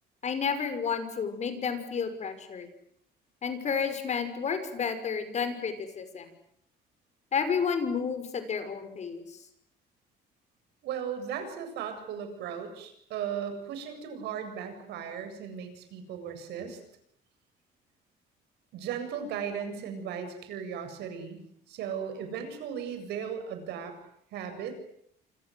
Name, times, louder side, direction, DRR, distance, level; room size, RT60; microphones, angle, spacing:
voice 1, 0.2-2.7 3.4-6.3 7.3-9.4, left 6 dB, 45° left, 10 dB, 6.0 m, -31 dB
voice 2, 10.8-16.8 18.7-21.4 21.7-24.0 24.3-24.7, right 8 dB, 80° right, 8 dB, 7.9 m, -36 dB
27.5 x 27.0 x 8.0 m, 0.69 s
cardioid pair, 110°, 17 cm